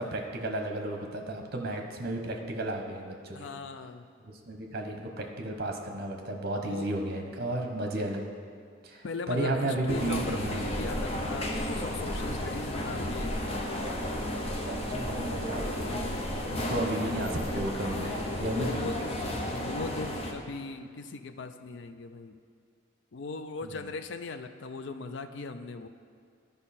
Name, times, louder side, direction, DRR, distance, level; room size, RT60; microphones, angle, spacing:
voice 1, 0.0-3.5 4.2-8.2 8.8-10.7 14.6-16.1 16.5-18.9 19.4-19.5 23.6-23.7, right 1 dB, 50° right, 3 dB, 0.9 m, -33 dB
voice 2, 3.3-4.1 6.6-6.9 9.0-13.6 17.9-19.0 19.6-22.4 23.1-25.9, left 3 dB, 60° left, 9 dB, 0.4 m, -39 dB
sound 1, 9.9-20.3, left 1 dB, 30° left, 0.7 m, -33 dB
11.5 x 5.4 x 4.2 m, 2.2 s
head